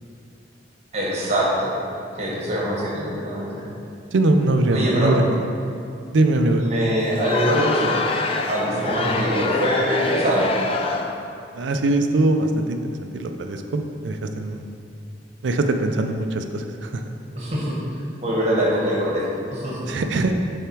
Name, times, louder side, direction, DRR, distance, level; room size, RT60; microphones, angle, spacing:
voice 1, 0.9-1.7 2.2-3.6 4.7-5.2 6.6-8.0 8.5-10.5 17.3-17.7 18.2-19.2 19.5-19.8, equal, 35° right, -5 dB, 1.3 m, -23 dB
voice 2, 4.1-5.4 6.1-6.6 11.5-12.8 13.1-14.6 15.4-17.0 19.9-20.3, right 2 dB, 80° right, 6 dB, 0.5 m, -21 dB
Crowd, 7.1-11.3, left 4 dB, 30° left, 0.3 m, -26 dB
6.6 x 3.6 x 4.6 m, 2.5 s
head